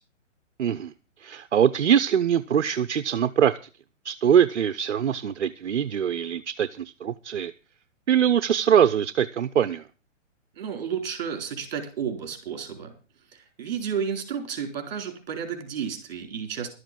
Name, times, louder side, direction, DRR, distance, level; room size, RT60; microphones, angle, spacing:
voice 1, 0.6-0.9 1.2-3.6 4.0-7.5 8.1-9.8, right 9 dB, 65° right, 11 dB, 0.8 m, -23 dB
voice 2, 10.6-12.9 13.3-16.7, right 7 dB, 35° right, 5 dB, 4.4 m, -32 dB
12.5 x 8.0 x 7.6 m, 0.35 s
hypercardioid pair, 175°, 38 cm